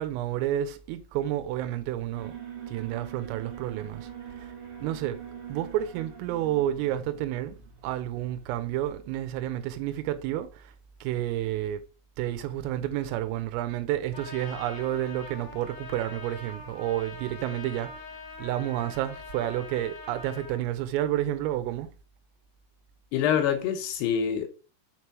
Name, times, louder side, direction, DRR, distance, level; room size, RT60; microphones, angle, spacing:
voice 1, 0.0-2.4 2.7-4.1 4.4-4.5 4.8-5.2 5.5-10.7 11.0-11.8 12.2-18.0 18.4-21.9, right 13 dB, 90° right, 3.4 m, -30 dB
Alarm, 2.1-9.3, right 9 dB, 55° right, 3.0 m, -43 dB
Trumpet, 14.1-20.6, left 3 dB, 50° left, 1.2 m, -43 dB
voice 2, 23.1-24.5, left 8 dB, 75° left, 2.6 m, -25 dB
6.6 x 4.8 x 5.8 m
omnidirectional pair, 5.8 m